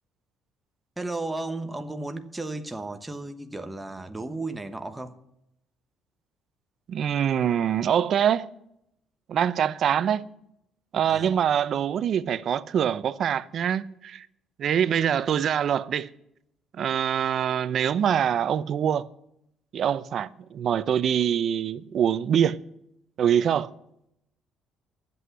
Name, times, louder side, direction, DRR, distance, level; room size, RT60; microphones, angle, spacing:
voice 1, 1.0-5.2 11.1-11.4, right 2 dB, 10° right, 1.1 m, -34 dB
voice 2, 6.9-8.5 9.3-10.3 10.9-14.3 14.6-16.1 16.8-19.1 19.7-22.6 23.2-23.7, right 9 dB, 55° right, 0.6 m, -24 dB
11.0 x 8.0 x 9.5 m
cardioid pair, 100°, 0 cm